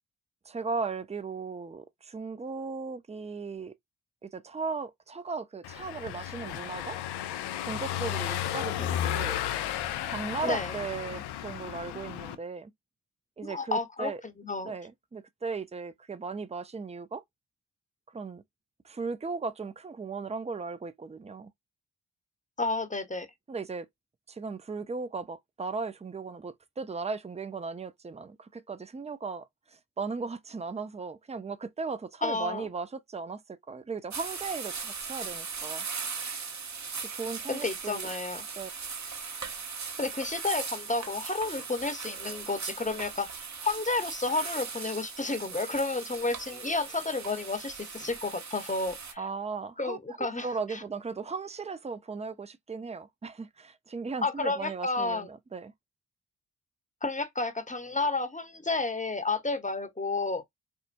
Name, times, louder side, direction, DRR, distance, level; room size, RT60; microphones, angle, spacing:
voice 1, 0.5-3.7 4.2-7.0 7.6-9.4 10.0-12.7 13.4-14.2 14.6-17.2 18.1-18.4 18.8-21.5 23.5-23.9 24.3-35.8 37.1-38.1 38.6-38.7 49.2-55.7, right 4 dB, 15° right, 0.6 m, -37 dB
Car passing by / Engine, 5.6-12.4, left 11 dB, 80° left, 0.6 m, -33 dB
voice 2, 10.4-10.7 13.4-14.1 14.4-14.7 22.6-23.3 32.2-32.7 37.5-38.4 40.0-49.2 49.8-50.8 54.2-55.3 57.0-60.4, left 3 dB, 20° left, 0.9 m, -31 dB
sound 1, 34.1-49.1, right 5 dB, 45° right, 1.0 m, -39 dB
4.5 x 2.2 x 2.5 m
supercardioid pair, 40°, 39 cm